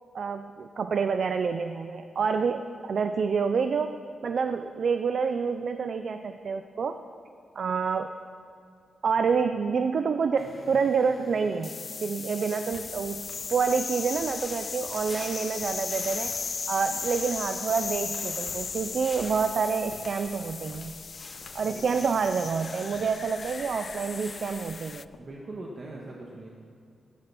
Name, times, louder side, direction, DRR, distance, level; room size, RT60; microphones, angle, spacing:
voice 1, 0.1-4.0 4.2-7.0 7.6-8.1 9.0-11.7 12.0-16.3 16.7-20.9 21.5-25.1, right 5 dB, 65° right, 9 dB, 0.6 m, -28 dB
sound 1, 10.4-25.0, left 5 dB, 50° left, 0.4 m, -37 dB
sound 2, 12.7-25.2, left 3 dB, 70° left, 1.7 m, -52 dB
sound 3, 14.4-24.7, left 1 dB, 20° left, 2.7 m, -49 dB
voice 2, 21.6-22.0 25.2-26.5, right 2 dB, 50° right, -1 dB, 1.8 m, -41 dB
15.0 x 12.0 x 6.0 m, 2.3 s
cardioid pair, 65°, 0 cm